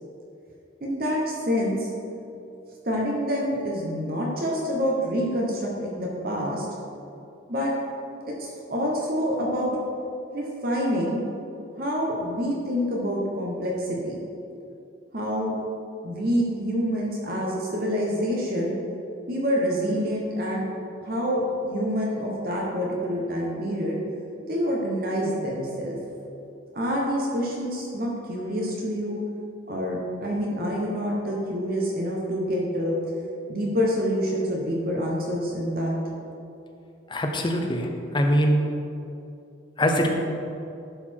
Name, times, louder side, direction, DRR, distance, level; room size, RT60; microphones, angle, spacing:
voice 1, 0.8-1.9 2.8-6.7 7.5-7.7 8.4-9.7 10.3-11.2 11.8-14.2 15.1-15.5 16.0-18.7 19.3-20.7 21.0-24.0 24.5-25.9 26.7-29.2 29.7-32.9 33.5-35.9, equal, 50° right, -3 dB, 1.1 m, -27 dB
voice 2, 37.1-38.6 39.8-40.1, equal, 25° left, 3 dB, 0.7 m, -23 dB
11.0 x 4.2 x 4.5 m, 2.7 s
head